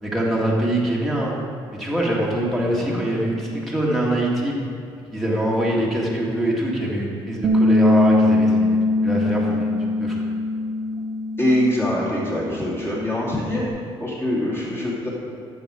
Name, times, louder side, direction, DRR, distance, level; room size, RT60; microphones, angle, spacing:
voice 1, 0.0-1.3 1.7-4.6 5.1-9.7 10.0-10.2, right 1 dB, ahead, -4 dB, 1.7 m, -23 dB
voice 2, 2.7-3.0 11.4-13.6 14.0-15.1, left 1 dB, 20° left, -6 dB, 2.5 m, -24 dB
Bass guitar, 7.4-13.7, left 2 dB, 50° right, 0.5 m, -22 dB
12.5 x 7.2 x 4.8 m, 2.5 s
cardioid pair, 175°, 10 cm